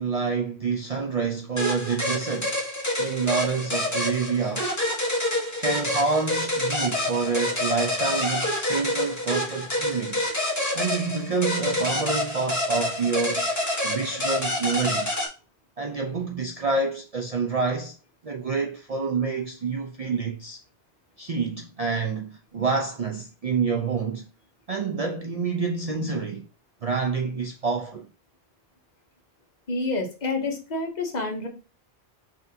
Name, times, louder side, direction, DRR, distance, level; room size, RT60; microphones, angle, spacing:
voice 1, 0.0-2.6 3.0-4.7 5.6-10.3 10.7-13.5 13.8-15.1 15.8-18.0 18.2-20.6 21.2-24.3 24.7-26.5 26.8-28.1, right 4 dB, 50° right, 0.5 m, -27 dB
sound 1, 1.6-15.3, left 1 dB, 15° left, 1.0 m, -27 dB
voice 2, 29.7-31.5, left 3 dB, 45° left, 1.0 m, -28 dB
5.8 x 2.6 x 2.7 m
omnidirectional pair, 1.1 m